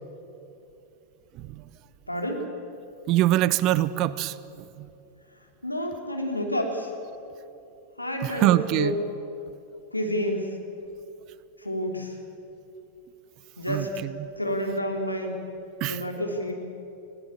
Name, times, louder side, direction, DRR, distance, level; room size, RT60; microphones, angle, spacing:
voice 1, 2.1-2.5 5.6-6.9 8.0-8.9 9.9-10.5 11.6-12.2 13.6-13.9 14.4-15.3 15.8-16.5, equal, 85° left, 2 dB, 3.0 m, -29 dB
voice 2, 3.1-4.9 8.2-9.0 13.7-14.3 15.8-16.0, right 14 dB, 40° right, 17 dB, 0.7 m, -24 dB
20.5 x 17.0 x 8.6 m, 2.8 s
figure-of-eight pair, 90°, 0 cm